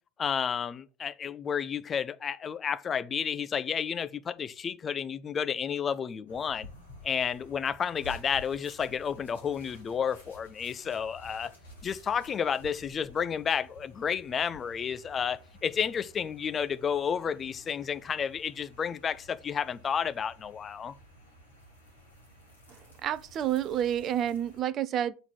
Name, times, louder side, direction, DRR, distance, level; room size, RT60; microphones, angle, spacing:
voice 1, 0.2-6.7 7.0-11.5 11.8-20.9, left 7 dB, 30° left, 0.6 m, -31 dB
sound 1, 6.3-24.6, equal, 85° left, 3.2 m, -53 dB
voice 2, 22.7-25.1, right 10 dB, 40° right, 0.5 m, -30 dB
7.4 x 4.0 x 6.1 m
figure-of-eight pair, 75°, 0 cm